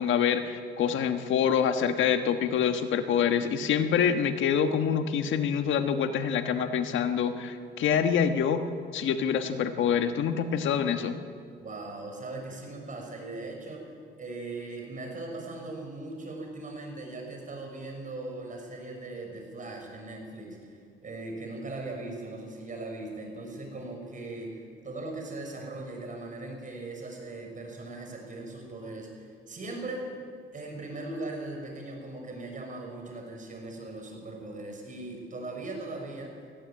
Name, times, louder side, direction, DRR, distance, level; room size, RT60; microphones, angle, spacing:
voice 1, 0.0-8.7 8.9-11.2, left 7 dB, 75° left, 8 dB, 1.4 m, -26 dB
voice 2, 11.6-13.9 14.2-20.6 21.0-30.1 30.5-36.3, right 2 dB, 40° right, 2 dB, 6.1 m, -39 dB
19.0 x 15.5 x 8.9 m, 2.1 s
cardioid pair, 90°, 20 cm